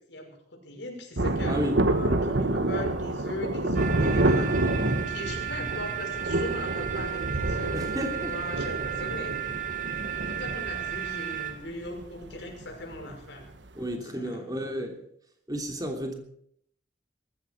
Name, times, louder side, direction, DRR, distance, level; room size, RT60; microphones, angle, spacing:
voice 1, 0.0-1.6 1.9-7.8 8.1-9.4 10.2-13.5 13.8-14.4, left 1 dB, 75° left, 1 dB, 5.8 m, -39 dB
Thunder, 1.2-13.2 13.4-13.5, right 2 dB, 85° right, 1.4 m, -28 dB
voice 2, 1.4-1.8 7.7-8.4 13.7-15.0 15.5-16.1, equal, 20° right, 3 dB, 3.2 m, -32 dB
sound 1, 3.7-11.5, right 11 dB, 45° right, 2.9 m, -34 dB
20.0 x 14.5 x 4.7 m, 0.68 s
head